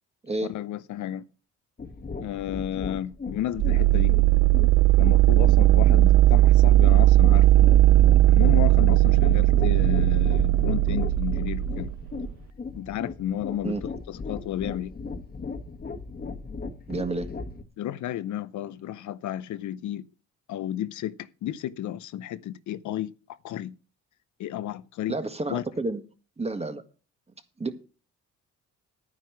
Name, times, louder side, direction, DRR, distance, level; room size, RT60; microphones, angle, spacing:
voice 1, 0.5-1.2 2.2-4.2 5.0-7.7 8.3-11.9 12.7-13.8 14.1-15.0 17.8-20.0 20.5-23.1 23.4-23.8 24.4-25.1 25.5-25.6, left 12 dB, 75° left, 0.7 m, -32 dB
sound 1, 1.8-17.6, left 4 dB, 30° left, 1.5 m, -37 dB
sound 2, 3.6-12.3, right 16 dB, 55° right, 0.5 m, -18 dB
voice 2, 16.9-17.3 25.1-26.0 26.4-26.8 27.6-27.7, right 2 dB, 20° right, 1.6 m, -30 dB
11.0 x 9.6 x 4.7 m
cardioid pair, 90°, 30 cm